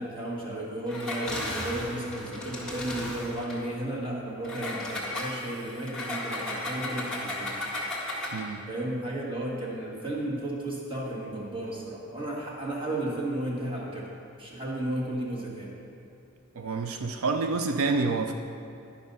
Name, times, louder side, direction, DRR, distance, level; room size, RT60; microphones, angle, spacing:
voice 1, 0.0-7.5 8.7-14.1 14.4-15.7, right 1 dB, 25° right, -4 dB, 1.6 m, -33 dB
Engine, 0.9-3.6 4.4-8.5, left 1 dB, 5° left, 1.6 m, -35 dB
voice 2, 8.3-8.6 16.6-18.3, right 3 dB, 85° right, 6 dB, 0.5 m, -28 dB
11.5 x 5.3 x 5.4 m, 2.6 s
head